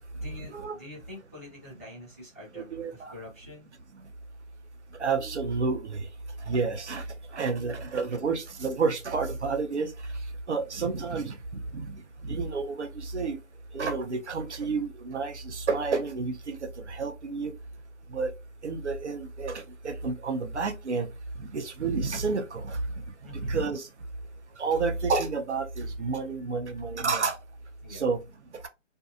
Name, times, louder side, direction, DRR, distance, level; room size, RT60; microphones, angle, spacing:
voice 1, 0.1-3.7 23.2-23.6 26.1-26.2 27.8-28.1, left 2 dB, 15° left, 0.6 m, -46 dB
voice 2, 2.5-3.1 5.0-6.1 6.5-7.1 7.3-9.9 10.5-12.0 12.2-13.4 13.7-17.5 18.1-18.3 18.6-21.1 21.4-22.8 23.3-23.9 24.6-27.4 27.9-28.2, right 4 dB, 60° right, 0.7 m, -30 dB
2.6 x 2.3 x 2.5 m
figure-of-eight pair, 160°, 38 cm